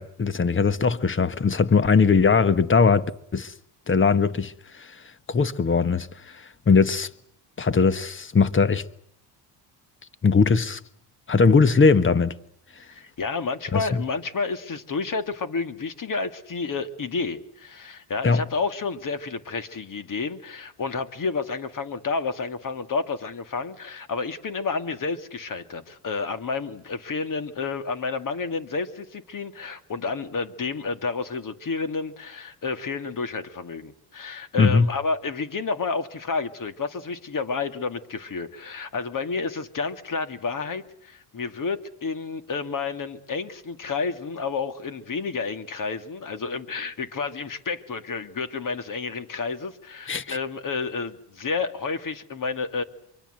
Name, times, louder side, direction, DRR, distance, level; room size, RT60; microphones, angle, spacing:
voice 1, 0.0-3.0 3.3-3.5 3.9-4.9 5.3-6.1 6.7-7.1 7.6-8.8 10.2-10.8 11.3-12.3 13.7-14.0 18.2-18.4 34.6-34.9 50.1-50.4, left 5 dB, 25° left, 1.4 m, -20 dB
voice 2, 12.9-52.8, left 4 dB, 40° left, 2.5 m, -30 dB
25.0 x 23.5 x 8.0 m
supercardioid pair, 85°, 47 cm